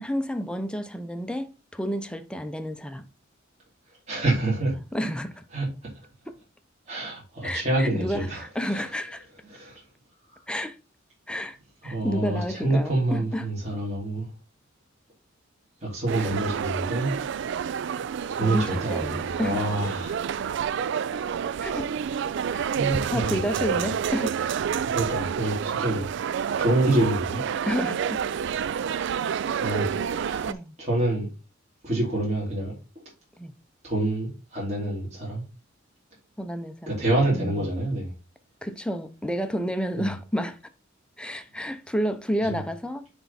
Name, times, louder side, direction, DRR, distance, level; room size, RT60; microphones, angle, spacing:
voice 1, 0.0-3.1 4.9-5.4 7.4-9.3 10.5-10.8 11.3-11.6 11.8-13.5 16.2-16.3 18.4-19.6 21.6-21.9 22.5-22.7 23.1-24.4 27.7-28.2 30.5-30.7 33.4-33.5 36.4-37.0 37.3-37.7 38.6-40.6 41.2-43.1, equal, 5° left, 0.7 m, -30 dB
voice 2, 4.1-4.8 5.5-5.9 6.9-8.8 9.5-9.8 10.3-10.4 11.8-14.3 15.8-17.2 18.3-20.3 22.7-23.4 24.9-26.1 26.5-27.4 29.6-31.3 31.8-32.7 33.8-35.4 36.9-38.1 40.0-40.1 42.4-42.6, right 1 dB, 35° right, 3.2 m, -27 dB
sound 1, 16.1-30.5, right 7 dB, 60° right, 0.3 m, -29 dB
9.9 x 3.5 x 4.2 m
head